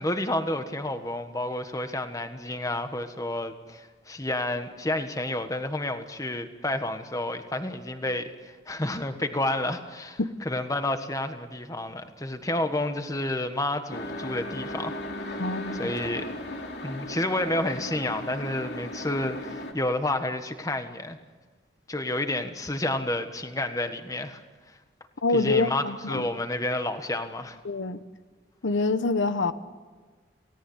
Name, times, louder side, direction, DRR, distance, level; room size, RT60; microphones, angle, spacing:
voice 1, 0.0-14.9 15.2-15.4 15.7-16.3 16.8-21.2 21.9-24.4 25.3-27.6, left 1 dB, 20° left, 8 dB, 1.4 m, -30 dB
sound 1, 13.9-19.7, left 1 dB, 60° left, 2.9 m, -36 dB
voice 2, 15.4-15.9 25.2-26.3 27.6-28.0 28.6-29.5, left 3 dB, 80° left, 12 dB, 1.0 m, -26 dB
29.0 x 17.5 x 8.0 m, 1.4 s
head